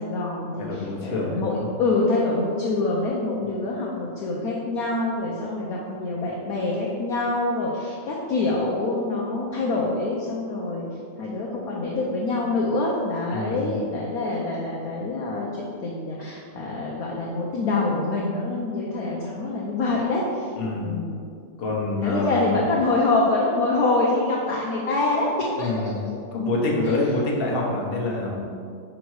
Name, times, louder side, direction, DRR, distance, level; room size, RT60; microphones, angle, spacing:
voice 1, 0.0-10.9 11.2-20.5 20.8-21.3 22.0-25.7 27.4-27.6, left 2 dB, 60° left, -3 dB, 1.0 m, -25 dB
voice 2, 0.6-1.7 13.3-13.8 20.6-21.0 21.6-22.5 25.6-25.9 26.3-28.4, left 2 dB, 40° left, -3 dB, 1.0 m, -26 dB
5.2 x 5.1 x 4.7 m, 2.3 s
omnidirectional pair, 2.1 m